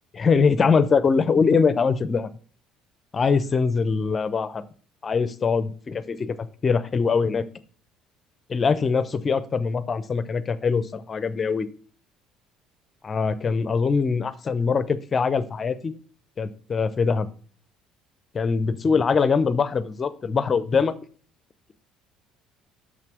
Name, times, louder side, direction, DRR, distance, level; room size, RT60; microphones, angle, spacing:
voice 1, 0.1-2.3 3.1-4.6 5.0-6.4 6.6-7.4 8.5-11.7 13.0-15.9 16.4-17.3 18.3-20.9, left 5 dB, 35° left, 14 dB, 0.7 m, -22 dB
6.3 x 5.9 x 4.6 m, 0.43 s
hypercardioid pair, 60°, 0 cm